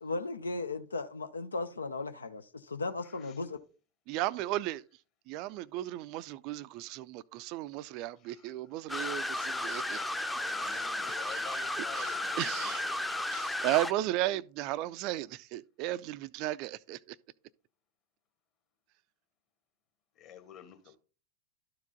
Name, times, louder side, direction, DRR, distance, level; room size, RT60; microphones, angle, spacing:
voice 1, 0.0-3.6, left 3 dB, 75° left, 0.6 m, -36 dB
voice 2, 3.0-3.5 5.4-5.6 8.2-8.8 10.4-13.0 20.2-21.0, left 8 dB, 35° left, 1.7 m, -50 dB
voice 3, 4.1-4.8 5.3-10.0 10.3-11.5 11.9-17.2, right 15 dB, 40° right, 0.4 m, -35 dB
sound 1, 8.9-13.9, left 2 dB, 5° left, 0.6 m, -34 dB
12.5 x 4.7 x 3.8 m
figure-of-eight pair, 90°, 0 cm